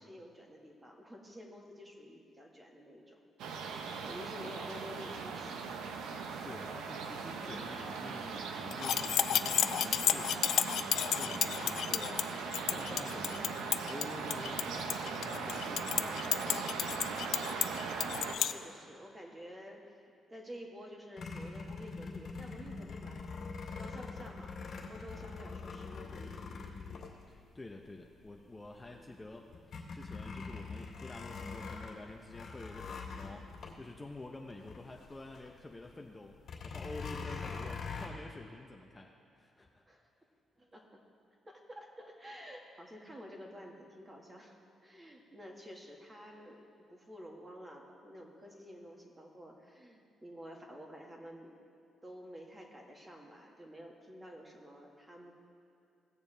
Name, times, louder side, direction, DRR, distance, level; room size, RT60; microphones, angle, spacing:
voice 1, 0.0-3.2 3.6-5.7 18.3-20.0 20.3-23.2 23.7-26.6 28.9-29.1 37.2-37.4 39.9-40.1 40.6-41.0 41.5-46.6 46.9-51.5 52.0-55.3, equal, 20° right, 0 dB, 1.7 m, -50 dB
sound 1, 3.4-18.4, right 5 dB, 90° right, 0.8 m, -39 dB
voice 2, 6.4-10.5 10.9-12.2 12.6-16.7 27.3-33.5 33.7-36.4 36.6-39.8, left 2 dB, 15° left, 2 dB, 0.7 m, -48 dB
sound 2, 8.7-18.5, left 10 dB, 75° left, 0.3 m, -32 dB
sound 3, 21.2-27.8 28.4-28.5 28.8-35.5 35.8-35.9 36.4-38.1, left 4 dB, 55° left, 2.2 m, -43 dB
17.5 x 6.9 x 3.3 m, 2.6 s
cardioid pair, 90°, 0 cm